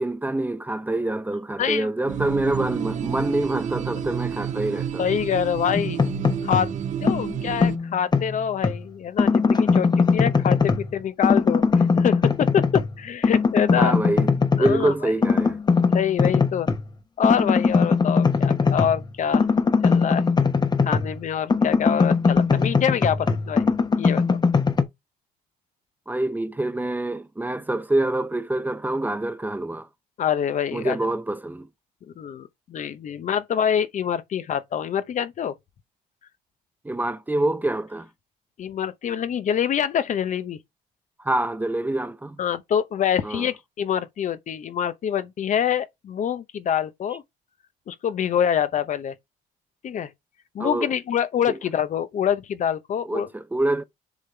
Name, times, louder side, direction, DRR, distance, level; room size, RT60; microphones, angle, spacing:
voice 1, 0.0-5.2 13.8-14.3 14.6-15.6 26.1-29.9 30.7-31.7 36.8-38.1 41.2-42.4 43.2-43.5 50.6-50.9 51.5-51.6 53.0-53.8, right 2 dB, 10° right, 0.7 m, -26 dB
voice 2, 1.6-1.9 5.0-6.0 6.4-6.7 7.0-13.9 14.6-15.1 15.9-16.7 17.2-19.4 19.8-20.3 20.8-23.7 24.0-24.4 30.2-31.0 32.2-35.5 38.6-40.6 42.4-47.2 47.9-49.1 49.8-50.1 50.5-53.3, left 8 dB, 45° left, 0.8 m, -25 dB
sound 1, 2.1-7.8, right 9 dB, 45° right, 1.0 m, -30 dB
sound 2, 5.7-6.7 7.1-8.8 9.2-10.9 11.2-13.0 13.2-14.8 15.2-16.8 17.2-21.2 21.5-24.8, left 4 dB, 25° left, 1.0 m, -21 dB
7.2 x 3.7 x 4.5 m
cardioid pair, 110°, 17 cm